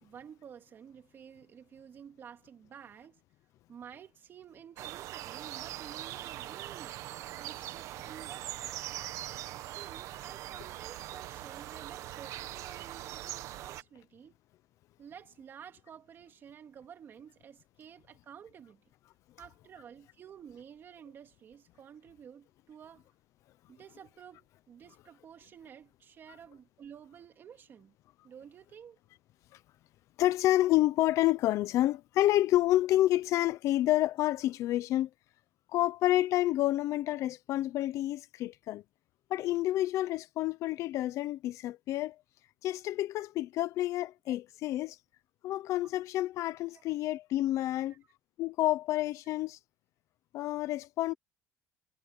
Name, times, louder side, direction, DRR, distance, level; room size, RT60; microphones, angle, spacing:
voice 1, 0.0-3.2 3.7-7.0 7.3-8.9 9.7-14.3 15.0-18.8 19.4-23.1 23.7-27.9 28.2-29.0 44.3-44.4 46.7-46.8 47.9-48.0, right 8 dB, 40° right, 3.4 m, -51 dB
sound 1, 4.8-13.8, right 14 dB, 65° right, 1.1 m, -41 dB
voice 2, 30.2-35.1 35.7-38.8 39.3-42.2 42.6-45.0 45.4-47.9 48.4-49.6 50.3-51.1, left 15 dB, 65° left, 0.8 m, -29 dB
cardioid pair, 140°, 6 cm